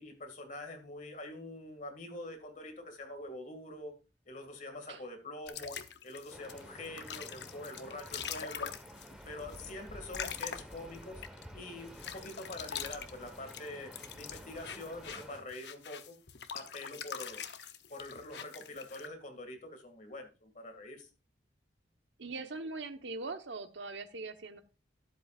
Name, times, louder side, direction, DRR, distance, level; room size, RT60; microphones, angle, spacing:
voice 1, 0.0-3.9 4.3-8.7 9.3-11.2 11.5-13.9 14.2-16.2 16.5-17.5 17.9-21.1, left 2 dB, 45° left, 5 dB, 2.1 m, -45 dB
sound 1, 5.5-11.4 11.9-19.1, left 8 dB, 70° left, 0.9 m, -43 dB
sound 2, 6.3-15.4, equal, 5° right, 1.2 m, -51 dB
voice 2, 22.2-24.6, right 3 dB, 90° right, 8 dB, 1.1 m, -41 dB
12.5 x 11.0 x 2.5 m, 0.31 s
head